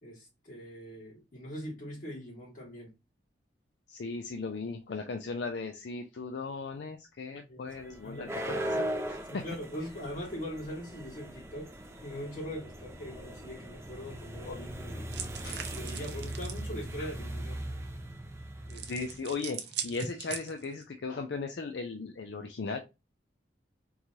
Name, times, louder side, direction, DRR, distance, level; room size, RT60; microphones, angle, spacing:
voice 1, 0.0-2.9 7.5-7.7 8.0-8.6 9.3-11.7 12.0-15.0 15.7-17.6 18.7-18.9, equal, 45° left, 2.2 m, -41 dB
voice 2, 3.9-8.8 9.1-9.4 14.5-14.6 15.4-15.7 17.0-17.1 18.9-22.8, left 4 dB, 70° left, 0.4 m, -37 dB
sound 1, 7.7-19.2, right 1 dB, 15° right, 0.5 m, -39 dB
sound 2, 15.1-16.6 18.7-20.8, right 7 dB, 65° right, 0.6 m, -40 dB
3.7 x 3.0 x 2.7 m
head